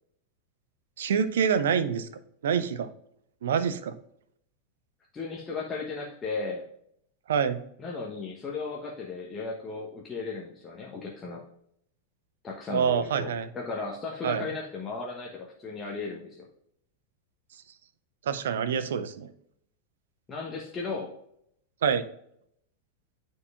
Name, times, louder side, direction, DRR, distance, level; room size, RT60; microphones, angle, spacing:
voice 1, 1.0-2.1 2.4-2.9 3.4-3.9 7.3-7.6 12.7-13.5 14.2-14.5 18.3-19.3 21.8-22.0, right 7 dB, 60° right, 12 dB, 0.6 m, -26 dB
voice 2, 5.1-6.6 7.8-11.4 12.4-16.4 20.3-21.1, left 4 dB, 20° left, -2 dB, 1.0 m, -36 dB
9.6 x 4.6 x 2.4 m, 0.71 s
figure-of-eight pair, 90°, 0 cm